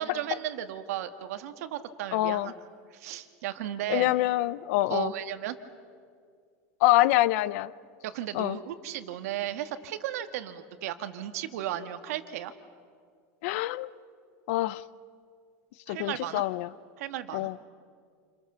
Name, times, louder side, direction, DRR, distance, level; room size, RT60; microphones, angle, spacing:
voice 1, 0.0-2.5 2.9-4.1 4.9-5.5 8.0-12.5 15.9-16.4 17.0-17.5, right 11 dB, 85° right, 1.8 m, -35 dB
voice 2, 2.1-2.5 3.9-5.1 6.8-7.7 8.3-8.6 13.4-13.9 14.5-14.8 15.9-16.7 17.3-17.7, left 16 dB, 70° left, 0.7 m, -25 dB
29.5 x 29.0 x 6.9 m
supercardioid pair, 150°, 8 cm